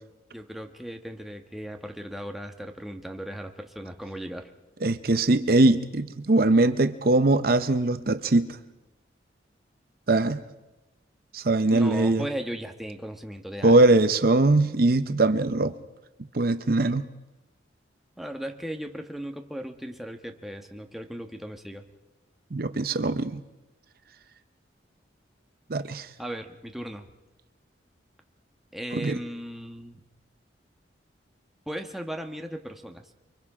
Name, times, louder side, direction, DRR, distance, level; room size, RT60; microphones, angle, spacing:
voice 1, 0.3-4.5 11.6-14.0 18.2-21.8 26.2-27.1 28.7-30.0 31.7-33.1, equal, ahead, 4 dB, 1.3 m, -37 dB
voice 2, 4.8-8.5 10.1-10.4 11.3-12.3 13.6-15.8 16.3-17.0 22.5-23.4 25.7-26.1 28.9-29.2, right 2 dB, 50° right, 11 dB, 0.7 m, -21 dB
30.0 x 23.5 x 4.9 m, 1.0 s
head